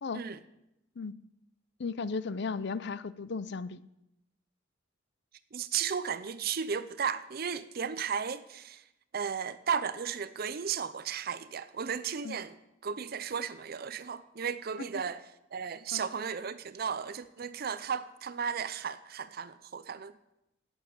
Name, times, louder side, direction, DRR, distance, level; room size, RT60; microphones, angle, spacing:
voice 1, 1.8-3.8 12.2-12.4 14.9-15.0 15.9-16.0, left 4 dB, 65° left, 0.5 m, -35 dB
voice 2, 5.5-8.8 9.1-12.5 12.8-15.2 15.5-20.1, right 7 dB, 55° right, 0.6 m, -34 dB
9.2 x 8.9 x 8.6 m
head